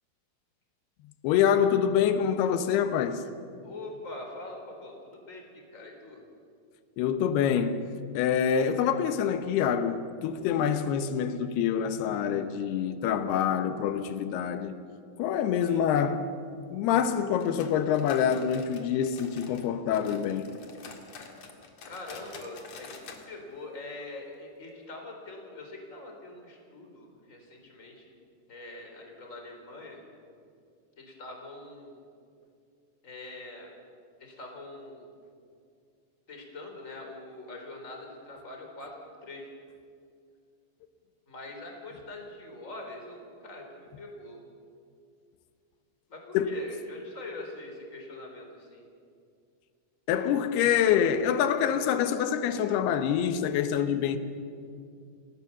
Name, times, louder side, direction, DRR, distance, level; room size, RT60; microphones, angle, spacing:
voice 1, 1.2-3.2 7.0-7.9 8.1-14.7 15.2-16.3 16.7-20.5 46.3-46.5 50.1-54.2, left 8 dB, 90° left, 3.1 m, -26 dB
voice 2, 3.6-6.2 15.7-15.8 21.8-28.1 28.5-30.0 31.0-32.0 33.0-33.7 34.2-35.1 36.3-39.0 39.2-39.5 41.3-44.4 46.1-48.8, left 2 dB, 20° left, 3.8 m, -43 dB
sound 1, 17.4-19.7 19.9-23.3 23.5-23.6 24.0-24.1 24.7-24.8, left 5 dB, 50° left, 2.9 m, -47 dB
28.5 x 18.0 x 7.2 m
omnidirectional pair, 4.5 m